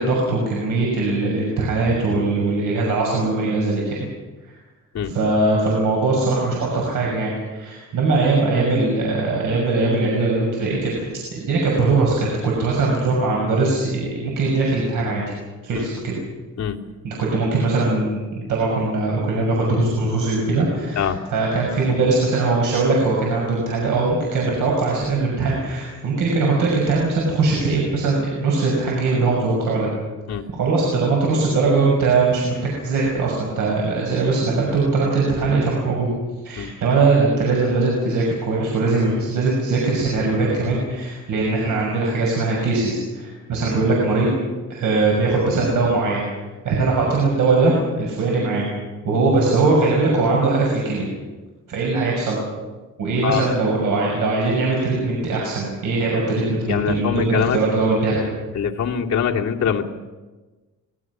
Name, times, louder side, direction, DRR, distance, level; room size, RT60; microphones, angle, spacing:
voice 1, 0.0-4.0 5.0-10.9 11.3-15.2 15.6-16.2 17.0-29.9 30.5-32.6 32.8-36.1 36.4-44.3 44.7-46.2 46.6-48.7 49.0-51.1 51.7-52.4 53.0-58.2, right 3 dB, 90° right, -2 dB, 6.3 m, -21 dB
voice 2, 53.2-53.5 56.7-57.6 58.5-59.9, left 7 dB, 55° left, -1 dB, 2.6 m, -23 dB
25.0 x 21.0 x 6.2 m, 1.2 s
cardioid pair, 125°, 31 cm